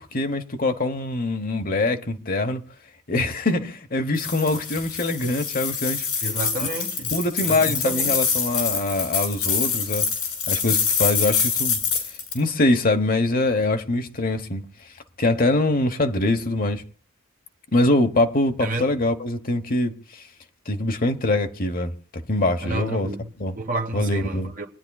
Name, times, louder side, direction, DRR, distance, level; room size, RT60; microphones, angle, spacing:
voice 1, 0.0-2.6 3.1-6.1 7.1-10.0 10.5-11.8 12.3-14.6 15.2-16.8 17.7-19.9 20.7-21.9 22.3-23.1 23.4-23.5 23.9-24.5, left 2 dB, 40° left, 1.1 m, -23 dB
sound 1, 4.2-12.4, left 6 dB, 80° left, 5.1 m, -25 dB
voice 2, 6.2-7.1 7.4-8.2 18.6-18.9 22.6-24.7, right 1 dB, 40° right, 1.3 m, -30 dB
27.5 x 9.7 x 2.3 m
head